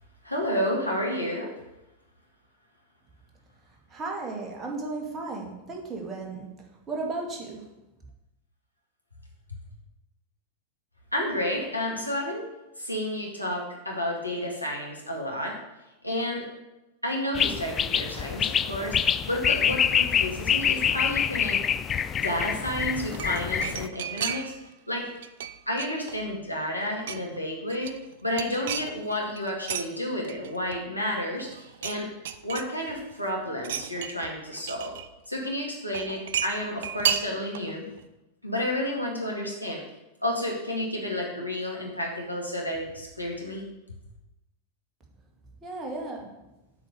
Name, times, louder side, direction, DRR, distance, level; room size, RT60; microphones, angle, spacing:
voice 1, 0.2-1.5 11.1-12.5 12.8-15.6 16.0-16.5 17.0-21.6 22.1-24.5 24.9-25.1 25.7-27.9 28.2-32.1 32.4-34.9 35.3-37.8 38.4-39.8 40.2-43.7, left 1 dB, 90° left, -2 dB, 2.2 m, -31 dB
voice 2, 3.9-7.6 45.6-46.3, right 3 dB, 25° right, 0 dB, 1.9 m, -35 dB
sound 1, 17.3-23.9, left 8 dB, 25° left, 0.3 m, -26 dB
sound 2, 22.9-24.7 25.0-26.4 26.7-27.4 27.7-29.9 30.2-31.1 31.4-32.0 32.3-33.1 33.6-35.1 35.9-37.7 38.0-38.1, right 8 dB, 60° right, 0.5 m, -33 dB
7.8 x 5.0 x 6.9 m, 0.95 s
figure-of-eight pair, 90°, 0 cm